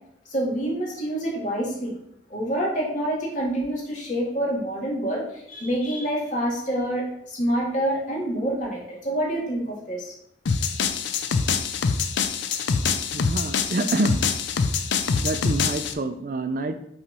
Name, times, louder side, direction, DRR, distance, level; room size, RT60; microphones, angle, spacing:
voice 1, 0.3-1.9 2.3-10.1, right 1 dB, 40° left, -3 dB, 1.7 m, -27 dB
sound 1, 10.5-15.9, left 5 dB, 75° left, 0.5 m, -25 dB
voice 2, 13.1-14.2 15.2-16.7, right 2 dB, 45° right, 8 dB, 0.4 m, -27 dB
5.7 x 3.2 x 5.4 m, 0.78 s
head